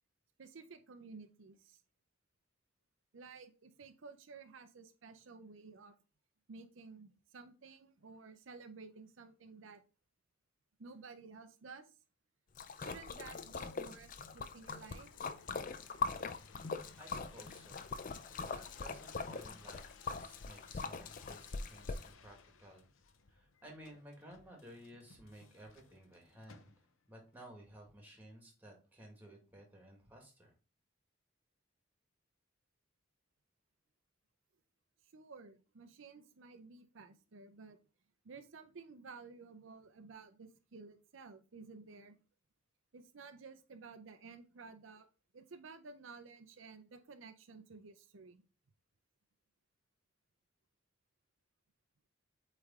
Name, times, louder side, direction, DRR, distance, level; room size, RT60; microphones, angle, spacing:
voice 1, 0.4-1.8 3.1-5.9 6.5-9.8 10.8-12.0 12.8-15.1 35.0-37.8 38.2-42.2 42.9-45.1 45.3-48.4, right 4 dB, 75° right, 9 dB, 0.6 m, -54 dB
sound 1, 12.6-27.1 27.7-28.2, left 5 dB, 85° left, 0.7 m, -62 dB
Splash splatter, 12.6-22.1, left 4 dB, 40° left, 0.4 m, -42 dB
voice 2, 17.0-18.1 18.4-22.9 23.3-26.7 27.1-30.5, equal, 10° right, 1 dB, 1.7 m, -56 dB
8.1 x 3.3 x 3.6 m, 0.34 s
head